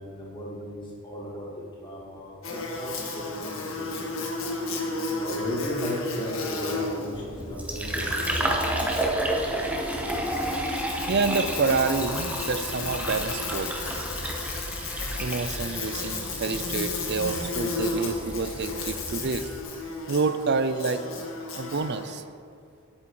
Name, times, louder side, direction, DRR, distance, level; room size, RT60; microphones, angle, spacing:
voice 1, 0.0-4.2 5.2-8.5, left 1 dB, 20° left, -4 dB, 2.4 m, -36 dB
Buzz, 2.4-22.2, left 3 dB, 65° left, 1.7 m, -34 dB
Fill (with liquid), 7.1-19.6, right 1 dB, 5° right, 1.1 m, -31 dB
sound 1, 9.1-16.5, right 1 dB, 65° right, 1.4 m, -47 dB
voice 2, 11.1-13.7 15.2-19.5 20.1-21.1 21.5-22.2, right 4 dB, 50° right, 11 dB, 0.5 m, -28 dB
10.5 x 8.6 x 4.8 m, 2.4 s
head